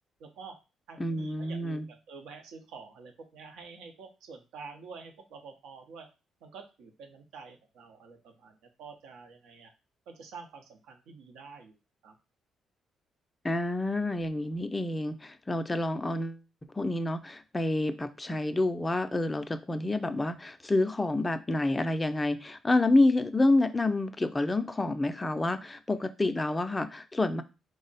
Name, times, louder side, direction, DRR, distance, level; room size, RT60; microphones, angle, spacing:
voice 1, 0.2-0.6 0.9-6.1 6.4-9.7 10.1-11.8 12.0-12.1, right 5 dB, 90° right, 4 dB, 0.7 m, -48 dB
voice 2, 1.0-1.9 13.4-16.4 16.7-27.4, left 2 dB, 20° left, 10 dB, 0.3 m, -28 dB
3.5 x 2.0 x 3.9 m, 0.30 s
cardioid pair, 90°, 0 cm